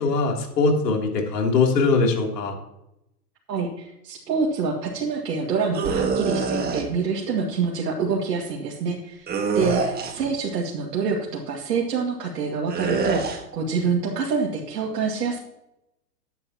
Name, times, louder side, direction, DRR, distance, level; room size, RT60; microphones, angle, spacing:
voice 1, 0.0-2.5 9.6-9.9, left 3 dB, 80° left, 1 dB, 3.3 m, -22 dB
voice 2, 3.5-9.3 9.5-15.4, right 5 dB, 80° right, -2 dB, 2.3 m, -26 dB
sound 1, 5.7-6.8 9.3-10.3 12.7-13.4, right 4 dB, 20° right, 1.6 m, -25 dB
13.5 x 9.8 x 3.0 m, 0.85 s
hypercardioid pair, 130°, 48 cm